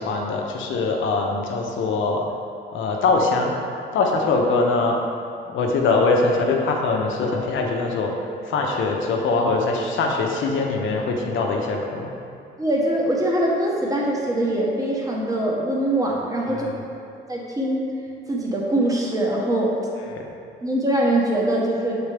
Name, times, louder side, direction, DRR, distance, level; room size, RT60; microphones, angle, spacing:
voice 1, 0.0-2.2 2.7-3.6 3.9-5.0 5.5-8.1 8.5-12.1 16.6-16.8 20.1-20.3, left 3 dB, 75° left, 1 dB, 0.8 m, -22 dB
voice 2, 12.6-16.7 17.3-17.8 18.3-19.7 20.6-21.9, right 1 dB, 15° right, -3 dB, 1.2 m, -22 dB
7.0 x 4.0 x 3.4 m, 2.5 s
cardioid pair, 90°, 20 cm